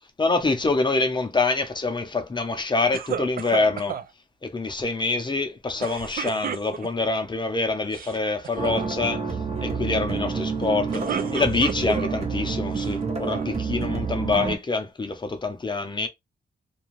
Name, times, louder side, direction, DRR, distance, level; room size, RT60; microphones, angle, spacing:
voice 1, 0.2-4.0 4.4-9.2 9.6-16.1, left 3 dB, 25° left, 0.6 m, -26 dB
sound 1, 2.9-4.1 5.8-7.1 7.8-8.2 8.4-8.9 10.7-12.2 12.8-13.5, right 8 dB, 50° right, 0.4 m, -32 dB
sound 2, 8.6-14.6, right 5 dB, 35° right, 1.0 m, -28 dB
2.5 x 2.3 x 3.1 m
cardioid pair, 95°, 19 cm